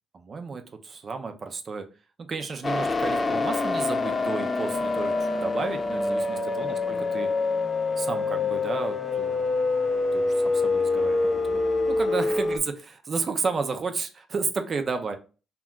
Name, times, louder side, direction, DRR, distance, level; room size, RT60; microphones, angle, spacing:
voice 1, 0.1-1.9 2.2-7.3 8.0-9.4 10.1-11.6 11.9-15.2, right 4 dB, 45° right, 7 dB, 0.4 m, -32 dB
sound 1, 2.6-12.6, left 3 dB, 30° left, 0.4 m, -26 dB
2.3 x 2.1 x 3.6 m, 0.35 s
cardioid pair, 90°, 0 cm